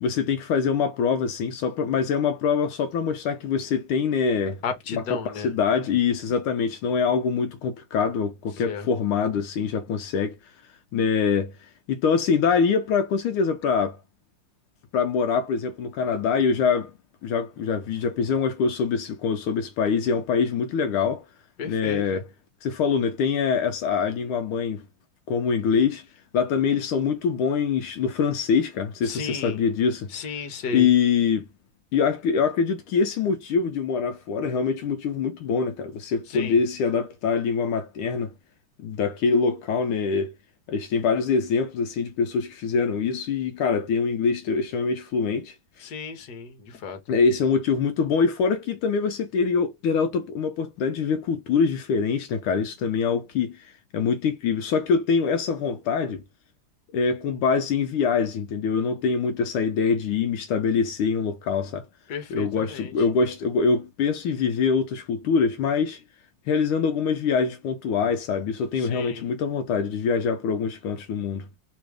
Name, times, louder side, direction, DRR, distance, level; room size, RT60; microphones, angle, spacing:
voice 1, 0.0-4.6 4.9-10.5 10.9-14.0 14.9-16.9 17.2-21.2 21.6-22.2 22.6-24.8 25.3-26.0 26.3-30.1 30.7-31.5 31.9-38.3 38.8-40.3 40.7-45.5 47.1-56.2 56.9-61.9 62.3-66.0 66.5-71.5, left 5 dB, 80° left, 1.4 m, -24 dB
voice 2, 4.6-5.5 8.6-8.9 21.6-22.2 29.0-29.6 30.1-30.9 36.3-36.6 45.8-47.0 62.1-62.9 68.7-69.3, left 5 dB, 55° left, 1.4 m, -33 dB
3.6 x 3.1 x 4.9 m
omnidirectional pair, 2.4 m